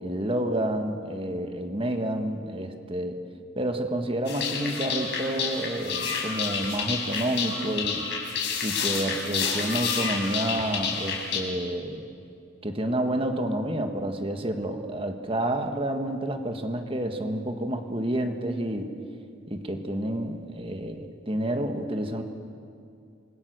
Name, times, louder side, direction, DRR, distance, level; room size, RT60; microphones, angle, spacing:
voice 1, 0.0-3.2 3.6-8.0 8.6-12.1 12.6-18.9 19.5-22.2, right 1 dB, 25° right, 5 dB, 1.6 m, -29 dB
sound 1, 4.3-11.4, left 6 dB, 60° left, 4.1 m, -29 dB
27.5 x 21.5 x 6.5 m, 2.4 s
head